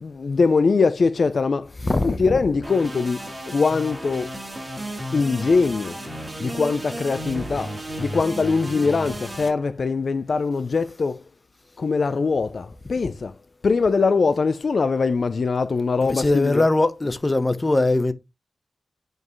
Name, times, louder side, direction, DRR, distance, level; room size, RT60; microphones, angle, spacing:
voice 1, 0.0-1.6 2.0-3.2 3.5-4.3 5.1-5.9 6.4-7.7 8.0-11.1 11.8-13.3 13.6-16.7, left 4 dB, 65° left, 0.5 m, -22 dB
voice 2, 1.8-2.4 16.0-18.1, left 2 dB, 30° left, 1.0 m, -21 dB
sound 1, 2.6-9.5, right 1 dB, 25° right, 3.6 m, -33 dB
9.5 x 5.3 x 3.2 m
wide cardioid pair, 70°, 0 cm